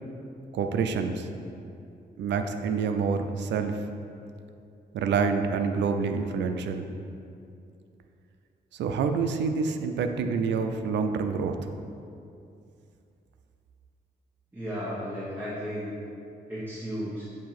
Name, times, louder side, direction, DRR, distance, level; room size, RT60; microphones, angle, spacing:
voice 1, 0.5-1.3 2.2-3.8 4.9-6.9 8.7-11.6, right 5 dB, 85° right, 7 dB, 0.5 m, -27 dB
voice 2, 14.5-15.9 16.5-17.3, equal, 10° right, -9 dB, 1.3 m, -34 dB
7.4 x 2.8 x 5.8 m, 2.5 s
cardioid pair, 80°, 18 cm